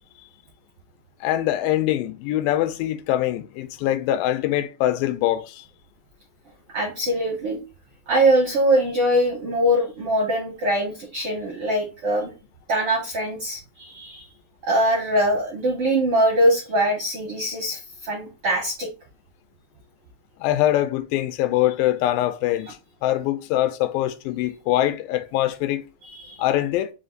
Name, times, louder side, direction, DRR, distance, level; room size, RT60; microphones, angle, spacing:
voice 1, 1.2-5.7 20.4-22.7 23.0-25.8 26.4-26.9, left 13 dB, 90° left, 2.3 m, -23 dB
voice 2, 6.7-7.6 8.1-12.3 12.7-14.2 14.6-18.9 26.0-26.4, right 1 dB, 75° right, 1.3 m, -22 dB
5.3 x 2.5 x 3.8 m
omnidirectional pair, 4.0 m